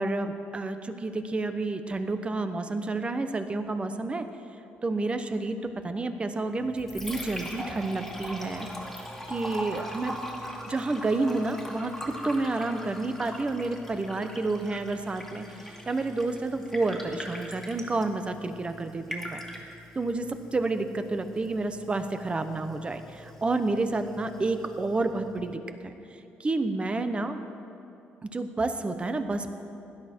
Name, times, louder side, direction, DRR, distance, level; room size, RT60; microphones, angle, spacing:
voice 1, 0.0-4.3 4.8-8.7 9.3-10.1 10.7-19.4 19.9-25.9 26.4-27.4 28.2-29.5, right 2 dB, 25° right, 9 dB, 0.9 m, -30 dB
Liquid, 6.6-25.6, equal, 5° left, 2.2 m, -41 dB
16.5 x 11.5 x 4.5 m, 2.8 s
cardioid pair, 90°, 4 cm